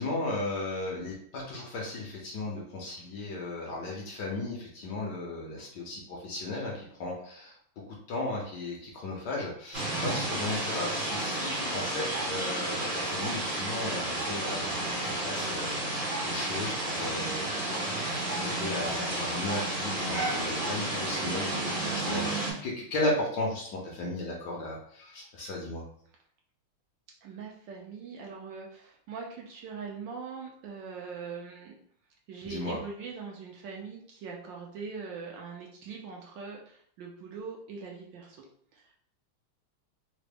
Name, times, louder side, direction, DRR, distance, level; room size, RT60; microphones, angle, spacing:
voice 1, 0.0-7.5 7.9-25.8 32.4-32.8, left 2 dB, 65° left, -2 dB, 1.2 m, -35 dB
sound 1, 9.7-22.5, right 1 dB, 40° right, 0.6 m, -31 dB
voice 2, 27.2-31.8 32.3-38.4 38.7-38.9, right 5 dB, 70° right, 0 dB, 1.2 m, -42 dB
3.8 x 2.0 x 3.4 m, 0.62 s
omnidirectional pair, 2.3 m